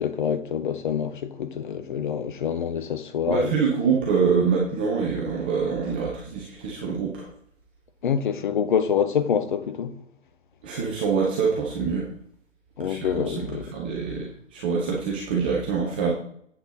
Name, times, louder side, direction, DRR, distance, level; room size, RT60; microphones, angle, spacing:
voice 1, 0.0-3.5 8.0-9.9 12.8-13.7, left 7 dB, 40° left, 1.0 m, -26 dB
voice 2, 3.3-7.3 10.6-12.1 12.8-13.5 13.7-16.1, right 5 dB, 10° right, 0.5 m, -25 dB
8.6 x 7.8 x 4.0 m
figure-of-eight pair, 130°, 37 cm